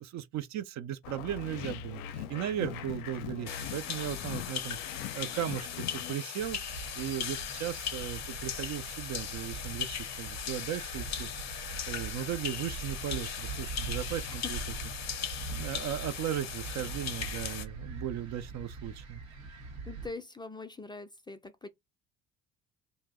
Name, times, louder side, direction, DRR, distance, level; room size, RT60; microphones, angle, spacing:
voice 1, 0.0-14.6 15.1-19.2, right 11 dB, 45° right, 0.4 m, -37 dB
sound 1, 1.0-6.2, left 10 dB, 75° left, 0.5 m, -41 dB
sound 2, 3.5-17.6, left 8 dB, 45° left, 0.7 m, -38 dB
sound 3, 6.4-20.1, right 4 dB, 90° right, 0.8 m, -42 dB
voice 2, 19.9-21.7, left 3 dB, 10° left, 0.4 m, -43 dB
2.5 x 2.1 x 3.5 m
hypercardioid pair, 55°, 39 cm